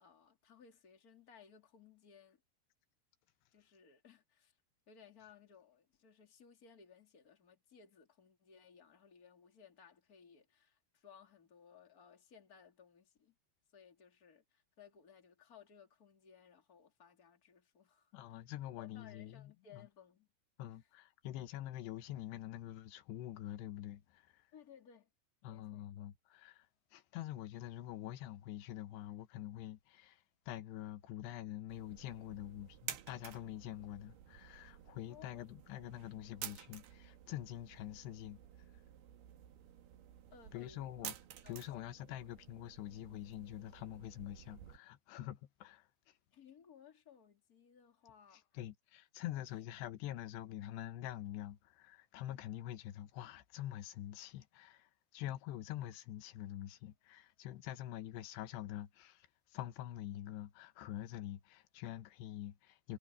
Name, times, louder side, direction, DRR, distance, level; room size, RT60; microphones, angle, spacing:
voice 1, 0.0-2.4 3.5-4.6 4.9-13.3 13.7-18.4 18.8-20.3 20.6-20.9 24.5-25.1 25.5-25.8 35.1-35.4 40.3-41.1 41.4-41.6 46.3-48.4 49.2-49.4, left 7 dB, 25° left, 2.7 m, -61 dB
voice 2, 18.1-19.9 20.6-24.5 25.4-26.7 26.9-38.4 40.5-41.1 41.5-45.9 48.5-63.0, left 13 dB, 85° left, 3.1 m, -46 dB
sound 1, 31.7-44.8, right 11 dB, 70° right, 3.4 m, -52 dB
omnidirectional pair, 4.8 m